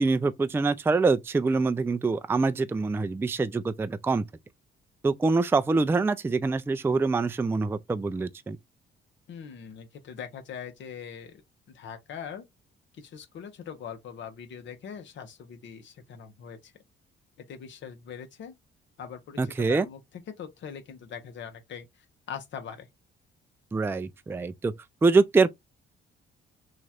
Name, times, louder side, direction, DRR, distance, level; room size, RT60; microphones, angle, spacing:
voice 1, 0.0-4.2 5.0-8.6 19.4-19.9 23.7-24.7 25.0-25.5, right 3 dB, 10° right, 0.3 m, -25 dB
voice 2, 9.3-11.4 11.7-12.4 12.9-16.7 17.5-18.5 19.0-20.0 20.4-21.9 22.3-22.9, left 7 dB, 70° left, 1.1 m, -41 dB
3.1 x 2.4 x 4.2 m
cardioid pair, 90°, 20 cm